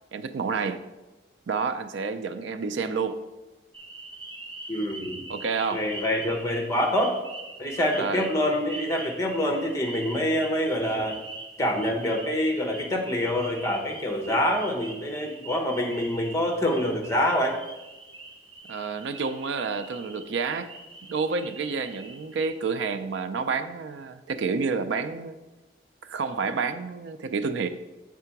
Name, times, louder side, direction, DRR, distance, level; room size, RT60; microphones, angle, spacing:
voice 1, 0.1-0.9 1.5-3.2 5.3-5.9 8.0-8.3 18.7-20.7 21.1-25.4 26.0-27.7, right 5 dB, 80° right, 0.4 m, -29 dB
sound 1, 3.7-22.5, right 2 dB, 30° right, 0.9 m, -43 dB
voice 2, 4.7-5.2 5.7-7.2 7.6-11.2 11.6-17.5, equal, 15° left, 0.9 m, -26 dB
6.7 x 3.6 x 5.8 m
head